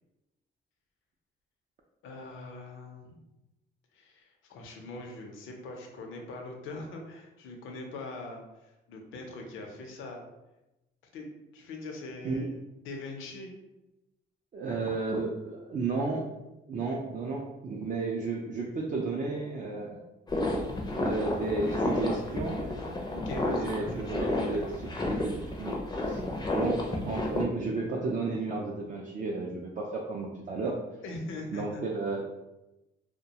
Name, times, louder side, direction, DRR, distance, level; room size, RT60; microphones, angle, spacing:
voice 1, 2.0-3.2 3.9-10.2 11.1-12.5 12.8-13.5 23.1-24.6 31.0-31.8, left 2 dB, 80° left, 2 dB, 0.5 m, -42 dB
voice 2, 14.5-16.3 16.7-20.0 20.9-22.6 23.5-26.2 26.5-30.8 31.5-32.2, right 3 dB, 40° right, -2 dB, 0.4 m, -33 dB
sound 1, 20.3-27.4, left 2 dB, 20° left, 0.4 m, -31 dB
2.3 x 2.1 x 2.7 m, 0.97 s
cardioid pair, 90°, 20 cm